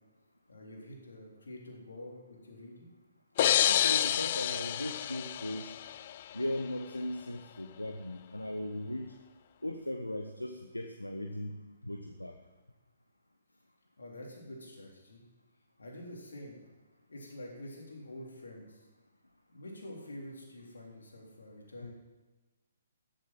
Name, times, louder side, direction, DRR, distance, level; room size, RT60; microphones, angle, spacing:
voice 1, 0.5-2.9 14.0-15.2 15.8-16.7 17.1-18.8 19.5-21.9, left 1 dB, 70° left, -1 dB, 3.5 m, -47 dB
sound 1, 3.4-6.2, left 11 dB, 40° left, 0.3 m, -28 dB
voice 2, 3.7-5.8 6.3-9.1 9.6-11.5 11.8-12.4 21.8-21.9, left 1 dB, 90° left, 5 dB, 1.0 m, -38 dB
14.0 x 7.6 x 7.5 m, 1.2 s
figure-of-eight pair, 130°, 0 cm